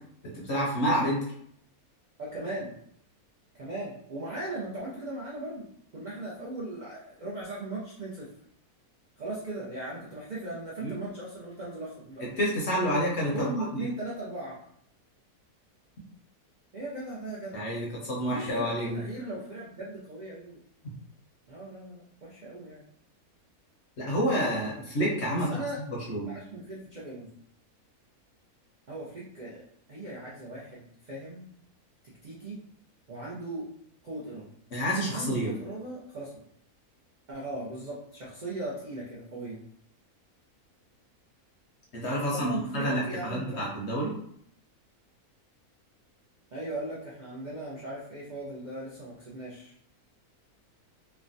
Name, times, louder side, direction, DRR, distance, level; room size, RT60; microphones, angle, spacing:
voice 1, 0.3-1.2 10.8-11.0 12.4-13.9 17.5-19.0 24.0-25.5 26.1-26.3 34.7-35.5 41.9-44.1, equal, 55° left, -3 dB, 0.8 m, -28 dB
voice 2, 2.2-2.8 3.6-8.3 9.2-12.3 13.3-14.6 16.7-17.7 18.2-20.6 21.5-22.8 25.3-25.8 26.3-27.3 28.9-29.6 29.9-31.4 32.2-32.6 33.1-33.7 34.0-34.5 35.1-36.3 37.3-39.7 42.3-43.7 46.5-49.7, right 2 dB, 60° right, -6 dB, 0.4 m, -38 dB
3.2 x 2.1 x 2.6 m, 0.67 s
omnidirectional pair, 1.6 m